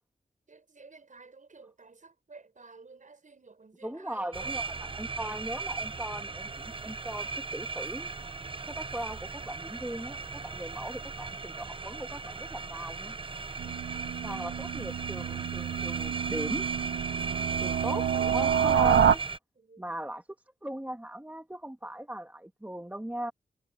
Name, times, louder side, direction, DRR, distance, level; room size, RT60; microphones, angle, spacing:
voice 1, 0.5-4.7 10.8-11.0 19.6-19.9, right 4 dB, 50° right, 7.0 m, -53 dB
voice 2, 3.8-8.1 8.7-13.2 14.2-16.7 17.6-19.2 19.8-20.2 20.6-23.3, right 1 dB, 10° right, 1.9 m, -38 dB
sound 1, 4.3-19.4, right 4 dB, 30° right, 0.7 m, -37 dB
sound 2, 13.6-19.2, right 8 dB, 85° right, 0.9 m, -28 dB
cardioid pair, 65°, 17 cm